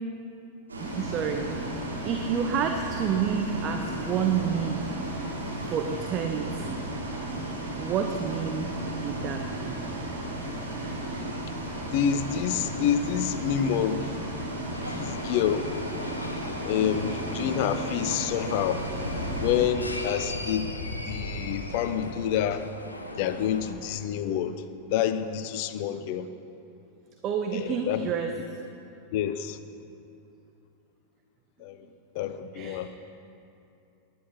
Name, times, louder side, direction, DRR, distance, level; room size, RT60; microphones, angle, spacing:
Bus, 0.7-19.7, right 1 dB, 75° right, 3.5 m, -34 dB
voice 1, 0.8-4.9 5.6-6.8 7.8-8.7 9.0-9.8 27.2-28.6 32.5-32.9, right 7 dB, 35° right, 5 dB, 1.0 m, -29 dB
voice 2, 11.9-14.1 14.9-15.7 16.6-18.8 19.4-20.7 21.1-22.7 23.2-24.6 24.9-26.3 27.5-28.1 29.1-29.6 31.6-31.8 32.1-32.9, left 9 dB, 45° left, 11 dB, 0.9 m, -27 dB
sound 1, 14.7-23.7, left 1 dB, 80° left, 1.5 m, -37 dB
20.0 x 11.0 x 5.7 m, 2.7 s
figure-of-eight pair, 90°, 0 cm